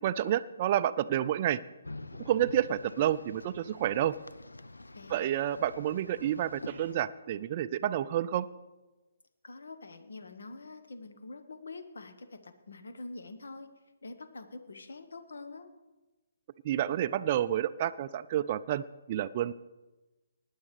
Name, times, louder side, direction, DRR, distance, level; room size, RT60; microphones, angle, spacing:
voice 1, 0.0-1.6 2.2-4.2 5.1-8.5 16.6-19.5, right 11 dB, 35° right, 12 dB, 0.3 m, -29 dB
sound 1, 1.8-7.0, left 2 dB, 85° left, 0.5 m, -46 dB
voice 2, 4.9-5.3 9.4-13.7 14.0-15.7, left 3 dB, 70° left, 10 dB, 1.0 m, -45 dB
19.0 x 10.0 x 3.3 m, 1.1 s
figure-of-eight pair, 135°, 0 cm